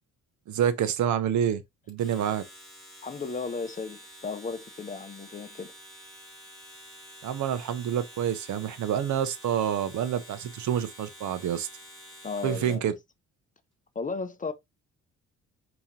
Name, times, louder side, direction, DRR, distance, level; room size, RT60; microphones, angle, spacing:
voice 1, 0.5-1.6 1.9-2.4 7.2-11.7 12.4-12.9, right 9 dB, 70° right, 0.8 m, -27 dB
Domestic sounds home sounds, 1.9-12.9, equal, ahead, 3.1 m, -49 dB
voice 2, 3.0-5.7 12.2-12.9 13.9-14.5, left 4 dB, 25° left, 0.6 m, -35 dB
4.9 x 3.0 x 2.8 m
cardioid pair, 90°, 30 cm